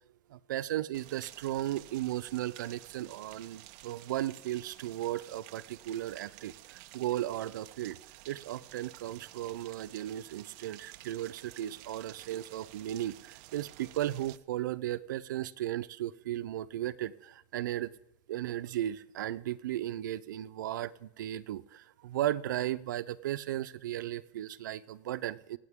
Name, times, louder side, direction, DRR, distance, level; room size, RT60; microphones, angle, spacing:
voice 1, 0.3-8.0 8.3-17.9 18.3-25.6, right 13 dB, 85° right, 15 dB, 0.6 m, -35 dB
Rain, 0.9-14.4, right 18 dB, 40° right, 0.5 m, -52 dB
25.0 x 8.8 x 3.7 m, 0.87 s
supercardioid pair, 165°, 10 cm